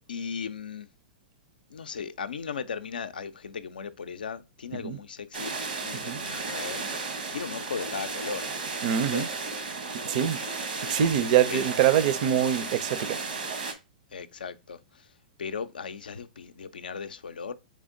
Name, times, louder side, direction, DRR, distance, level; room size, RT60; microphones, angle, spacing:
voice 1, 0.1-0.9 1.7-5.5 5.8-8.5 8.9-9.3 11.5-11.6 14.1-15.1 15.4-17.5, left 6 dB, 85° left, 0.4 m, -37 dB
sound 1, 5.3-13.7, right 4 dB, 85° right, 1.0 m, -34 dB
voice 2, 8.8-9.3 10.0-10.4 10.9-13.2, right 10 dB, 50° right, 0.5 m, -24 dB
3.5 x 3.3 x 3.7 m
hypercardioid pair, 120°, 5 cm